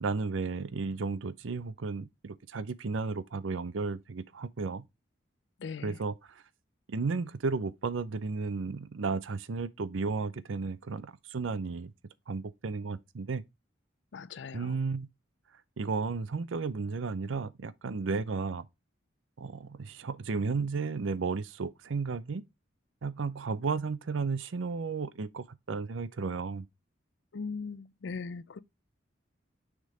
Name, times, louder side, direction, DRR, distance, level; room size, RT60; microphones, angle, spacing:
voice 1, 0.0-4.8 5.8-6.4 6.9-11.9 12.3-13.4 14.5-15.1 15.8-18.7 19.4-22.4 23.0-26.7, right 4 dB, 90° right, 0.6 m, -33 dB
voice 2, 5.6-6.0 14.1-14.8 27.3-28.6, left 5 dB, 65° left, 0.5 m, -39 dB
6.5 x 3.7 x 4.7 m
head